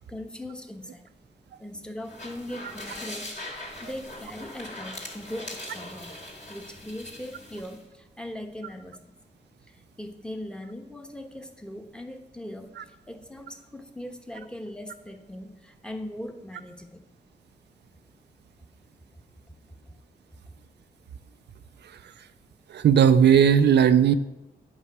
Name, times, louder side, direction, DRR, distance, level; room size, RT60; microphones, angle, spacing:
voice 1, 0.1-1.0 1.6-6.2 6.5-9.0 9.7-17.0 19.9-20.0 20.5-20.6, left 1 dB, 5° left, 5 dB, 1.1 m, -40 dB
sound 1, 2.0-7.8, left 1 dB, 45° left, 2.6 m, -41 dB
voice 2, 22.7-24.1, right 8 dB, 85° right, 10 dB, 0.4 m, -17 dB
8.9 x 5.5 x 4.8 m, 0.97 s
cardioid pair, 55°, 17 cm